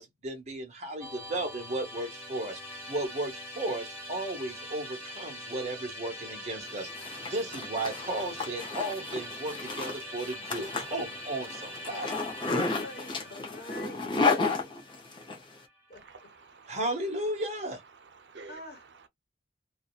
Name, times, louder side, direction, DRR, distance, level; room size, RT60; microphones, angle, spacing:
voice 1, 0.0-12.1 16.7-17.8, right 1 dB, 40° right, 1.0 m, -35 dB
Musical instrument, 1.0-16.2, left 1 dB, 10° right, 1.3 m, -43 dB
Zipper (clothing), 6.7-15.4, left 3 dB, 25° left, 0.6 m, -32 dB
voice 2, 11.9-14.7 15.2-15.3 15.9-16.3 18.5-18.9, left 1 dB, 55° left, 1.1 m, -46 dB
voice 3, 15.9-16.8 17.3-19.1, right 4 dB, 80° right, 0.6 m, -52 dB
2.7 x 2.2 x 2.3 m
head